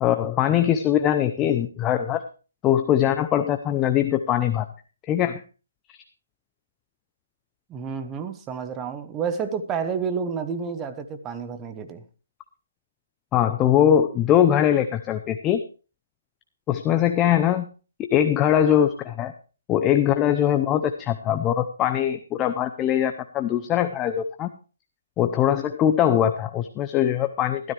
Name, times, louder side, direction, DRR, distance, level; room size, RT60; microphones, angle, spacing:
voice 1, 0.0-2.2 2.6-4.7 5.0-5.4 13.3-15.6 16.7-17.7 18.0-19.3 19.7-24.5 25.2-27.6, left 10 dB, 15° left, 0.6 m, -21 dB
voice 2, 7.7-12.0, right 6 dB, 15° right, 1.0 m, -30 dB
15.5 x 13.0 x 3.3 m
hypercardioid pair, 165°, 0 cm